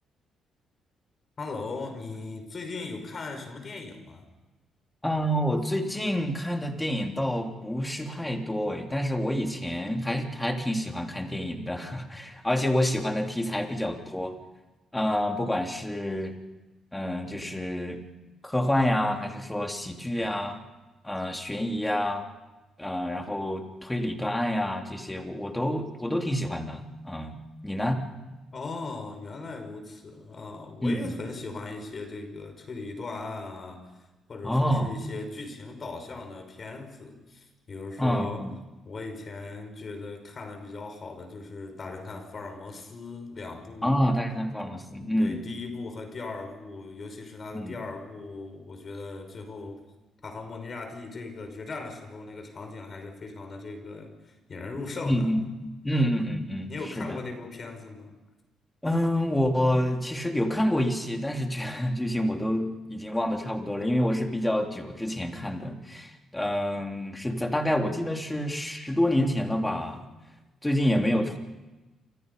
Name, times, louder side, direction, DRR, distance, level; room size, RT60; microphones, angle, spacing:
voice 1, 1.4-4.2 28.5-33.8 34.3-38.5 38.9-44.0 45.2-49.8 50.2-55.3 56.7-58.1, left 3 dB, 40° left, 6 dB, 5.2 m, -38 dB
voice 2, 5.0-14.4 14.9-16.3 16.9-18.0 18.4-20.6 21.0-22.2 22.8-28.0 30.8-31.1 34.4-34.9 38.0-38.6 43.8-45.4 47.5-47.8 55.0-57.2 58.8-70.0 70.6-71.4, equal, 10° left, 3 dB, 3.3 m, -28 dB
29.0 x 25.5 x 5.4 m, 1.1 s
cardioid pair, 90°, 0 cm